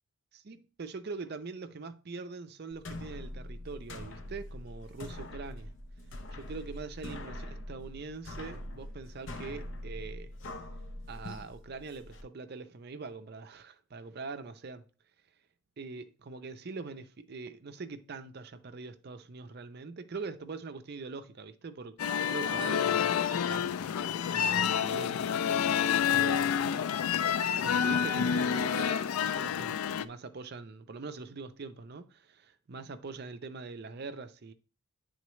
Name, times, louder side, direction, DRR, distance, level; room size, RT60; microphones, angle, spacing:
voice 1, 0.3-5.7 6.3-10.3 11.1-14.8 15.8-22.0 22.3-23.2 23.4-23.7 24.3-25.2 26.1-26.7 27.6-34.5, right 4 dB, 45° right, 0.5 m, -43 dB
sound 1, 2.7-12.2, left 1 dB, 55° left, 0.7 m, -43 dB
sound 2, 22.0-30.0, left 8 dB, 80° left, 0.3 m, -28 dB
9.4 x 3.8 x 3.1 m
head